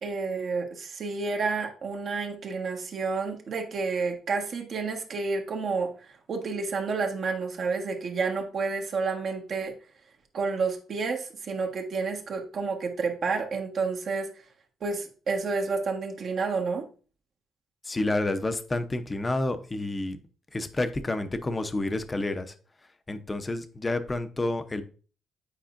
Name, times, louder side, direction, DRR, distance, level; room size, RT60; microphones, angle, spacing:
voice 1, 0.0-5.9 6.3-9.7 10.3-14.3 14.8-16.8, right 4 dB, 55° right, 2 dB, 1.4 m, -30 dB
voice 2, 17.9-20.2 20.5-22.5 23.1-24.8, left 2 dB, 25° left, 9 dB, 0.7 m, -29 dB
8.6 x 4.7 x 2.6 m, 0.38 s
cardioid pair, 90°, 0 cm